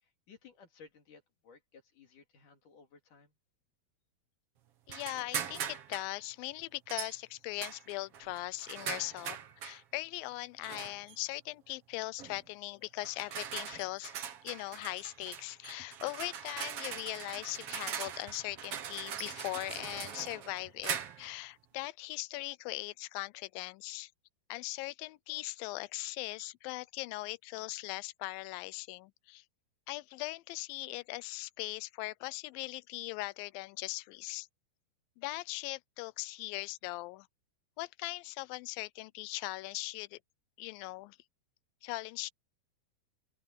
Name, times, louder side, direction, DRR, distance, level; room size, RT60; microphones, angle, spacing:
voice 1, 0.0-3.3, left 5 dB, 55° left, 4.6 m, -58 dB
voice 2, 4.9-9.4 9.6-24.1 24.5-29.4 29.9-34.5 35.2-37.3 37.8-40.2 40.6-41.2 41.8-42.3, left 21 dB, 80° left, 2.2 m, -40 dB
sound 1, 4.9-6.1 6.9-7.2 7.6-9.8 10.6-11.2 12.2-12.4 13.0-21.3, right 8 dB, 55° right, 1.8 m, -41 dB
open air
omnidirectional pair, 4.4 m